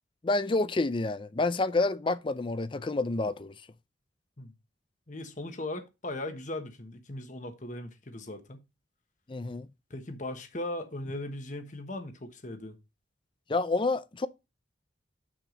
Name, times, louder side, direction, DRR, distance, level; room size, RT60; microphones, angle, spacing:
voice 1, 0.2-3.5 9.3-9.7 13.5-14.3, left 2 dB, 25° left, 0.5 m, -28 dB
voice 2, 5.1-8.6 9.9-12.8, left 1 dB, 40° left, 1.2 m, -38 dB
6.9 x 6.2 x 3.8 m
head